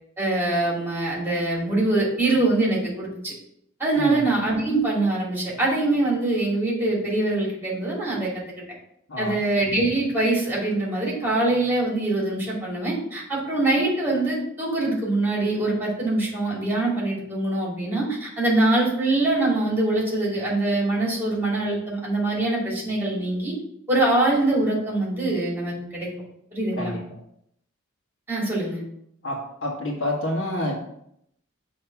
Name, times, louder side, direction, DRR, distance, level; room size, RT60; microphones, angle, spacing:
voice 1, 0.2-3.3 3.8-8.4 9.2-23.5 23.9-26.1 26.5-26.9 28.3-28.8, right 2 dB, 10° right, -4 dB, 2.7 m, -23 dB
voice 2, 29.2-30.8, left 1 dB, 65° left, -3 dB, 1.5 m, -28 dB
7.5 x 3.2 x 5.9 m, 0.72 s
head